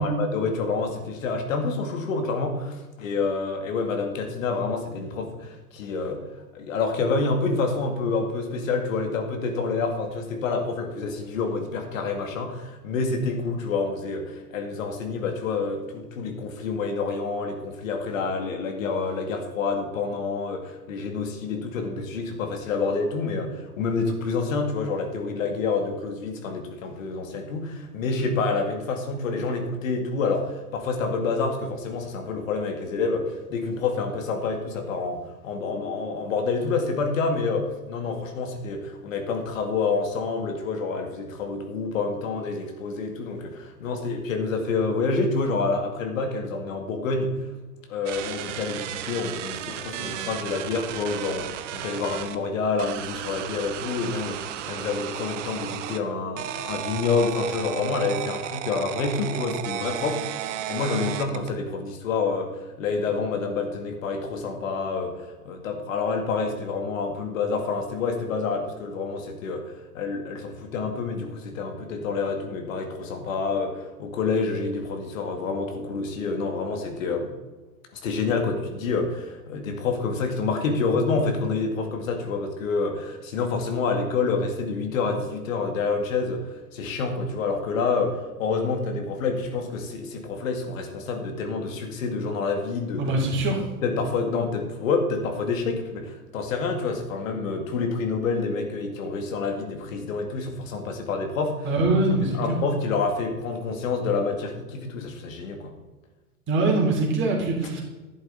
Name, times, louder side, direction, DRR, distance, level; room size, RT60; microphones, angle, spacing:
voice 1, 0.0-6.3 6.5-47.4 47.9-77.3 78.0-93.0 93.8-101.7 102.2-105.7, left 4 dB, 60° left, 4 dB, 2.2 m, -28 dB
sound 1, 48.1-52.4 52.8-56.0 56.4-61.6, right 11 dB, 50° right, 1.1 m, -34 dB
voice 2, 93.0-93.6 101.6-102.6 106.5-107.8, right 2 dB, 25° right, -1 dB, 3.6 m, -23 dB
11.5 x 10.5 x 4.0 m, 1.2 s
figure-of-eight pair, 105°, 46 cm